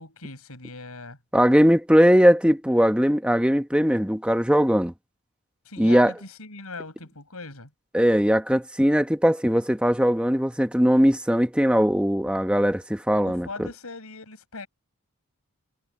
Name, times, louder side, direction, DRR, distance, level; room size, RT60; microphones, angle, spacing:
voice 1, 0.0-1.2 5.6-7.7 13.2-14.7, left 3 dB, 90° left, 6.4 m, -40 dB
voice 2, 1.3-4.9 5.8-6.1 7.9-13.7, equal, 5° right, 1.1 m, -20 dB
head